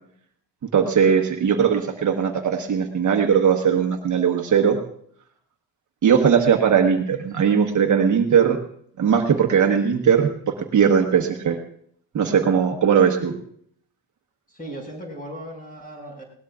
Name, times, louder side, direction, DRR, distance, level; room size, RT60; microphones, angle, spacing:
voice 1, 0.7-4.8 6.0-8.6 9.0-11.6 12.1-13.3, right 7 dB, 45° right, 3 dB, 1.2 m, -19 dB
voice 2, 14.5-16.2, right 1 dB, 20° left, -1 dB, 5.2 m, -37 dB
20.5 x 18.5 x 2.4 m, 0.66 s
cardioid pair, 165°, 42 cm